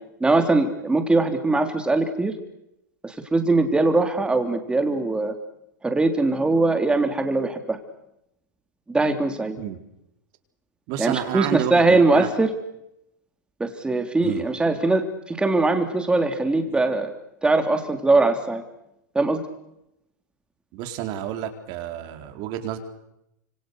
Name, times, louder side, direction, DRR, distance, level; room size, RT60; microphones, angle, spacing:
voice 1, 0.2-2.3 3.0-5.3 5.8-7.8 8.9-9.6 11.0-12.5 13.6-17.1 17.4-18.6 19.1-19.4, right 2 dB, 10° right, 6 dB, 3.7 m, -21 dB
voice 2, 10.9-12.3 14.2-14.4 20.7-22.8, right 11 dB, 45° right, 6 dB, 4.3 m, -30 dB
29.5 x 27.0 x 6.7 m, 0.85 s
hypercardioid pair, 120°, 10 cm